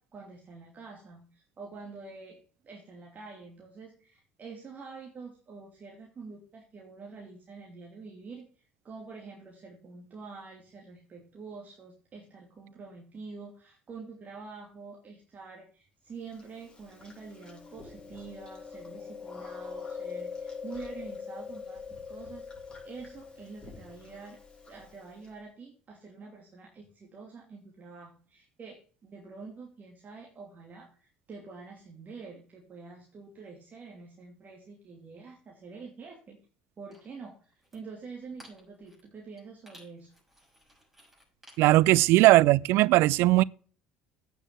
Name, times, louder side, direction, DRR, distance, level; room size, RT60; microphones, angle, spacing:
voice 1, 0.0-8.5 8.8-22.5 22.8-24.4 24.7-36.4 36.8-40.1 41.8-42.1, right 4 dB, 40° right, 2.7 m, -47 dB
Chewing mastication, 16.3-25.3, left 5 dB, 20° left, 5.4 m, -43 dB
sound 1, 36.9-37.2 37.4-37.8 38.3-39.1 39.4-39.5 39.7-42.3, equal, 5° right, 6.2 m, -57 dB
voice 2, 41.6-43.4, right 18 dB, 70° right, 0.4 m, -19 dB
9.0 x 6.4 x 6.4 m
hypercardioid pair, 70°, 4 cm